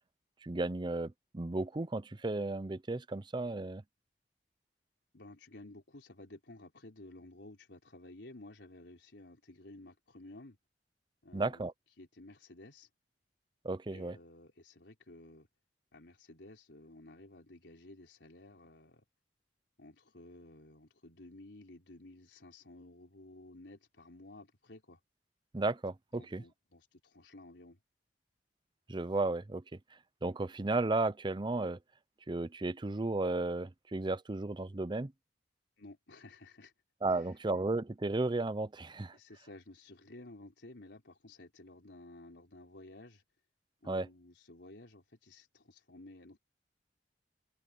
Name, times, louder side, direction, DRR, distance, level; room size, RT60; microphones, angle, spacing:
voice 1, 0.4-3.8 11.3-11.7 13.6-14.2 25.5-26.4 28.9-29.8 30.2-31.8 32.3-35.1 37.0-39.2 43.9-44.1, right 2 dB, 25° right, 0.6 m, -34 dB
voice 2, 5.1-10.6 11.2-11.7 12.0-12.9 13.9-15.5 15.9-19.1 19.8-25.0 26.1-27.8 35.8-36.7 37.1-37.3 39.1-43.2 43.8-46.4, left 2 dB, 85° left, 3.9 m, -54 dB
head